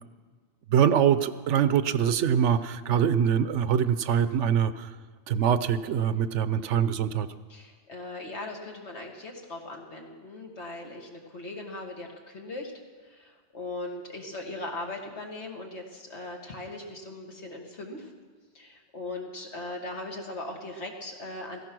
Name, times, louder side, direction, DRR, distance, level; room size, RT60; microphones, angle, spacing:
voice 1, 0.7-4.9 5.3-7.3, right 8 dB, 85° right, 13 dB, 1.0 m, -24 dB
voice 2, 7.5-12.7 13.0-18.1 18.5-21.6, left 2 dB, 70° left, 1 dB, 2.3 m, -39 dB
16.0 x 15.0 x 6.1 m, 1.5 s
omnidirectional pair, 1.2 m